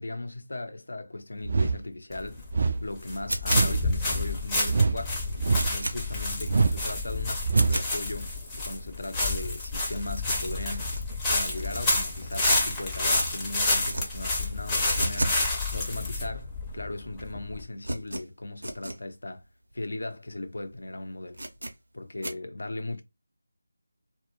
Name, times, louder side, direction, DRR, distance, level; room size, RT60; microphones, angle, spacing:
voice 1, 0.0-2.4 2.8-5.2 5.6-10.9 11.3-15.4 15.7-19.4 19.7-21.4 21.9-23.0, left 2 dB, 70° left, 0.5 m, -37 dB
sound 1, 1.4-1.8 2.5-2.8 3.5-3.8 4.7-5.0 5.4-5.8 6.5-6.8 7.4-7.8, right 4 dB, 40° right, 0.3 m, -24 dB
sound 2, 2.1-17.6, left 2 dB, 10° left, 0.5 m, -29 dB
sound 3, 3.3-3.9 4.4-4.5 4.9-5.0 5.2-6.0 6.4-6.5 6.8-7.0 7.4-7.9 8.4-8.5 8.7-8.8 9.0-9.1 9.4-9.5 9.7-11.0 11.4-12.8 13.0-13.3 13.7-14.0 14.3-15.4 15.7-15.8 16.4-16.5 16.7-17.1 17.3-19.0 19.4-19.5 19.7-19.8 20.3-20.5 20.7-20.8 21.3-21.7 22.2-22.3, right 1 dB, 70° right, 0.7 m, -34 dB
2.2 x 2.1 x 2.9 m
figure-of-eight pair, 165°, 0 cm